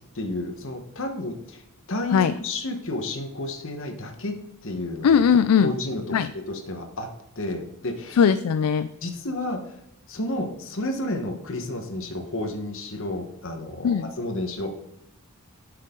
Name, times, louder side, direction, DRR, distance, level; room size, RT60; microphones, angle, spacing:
voice 1, 0.1-1.6 1.9-5.1 5.6-6.2 6.5-7.1 7.3-8.2 9.0-9.6 10.1-14.7, left 1 dB, 60° left, 5 dB, 1.3 m, -31 dB
voice 2, 5.0-5.7 6.1-6.3 8.2-8.9 13.8-14.1, left 7 dB, 75° left, 12 dB, 0.4 m, -19 dB
12.0 x 6.6 x 3.8 m, 0.81 s
head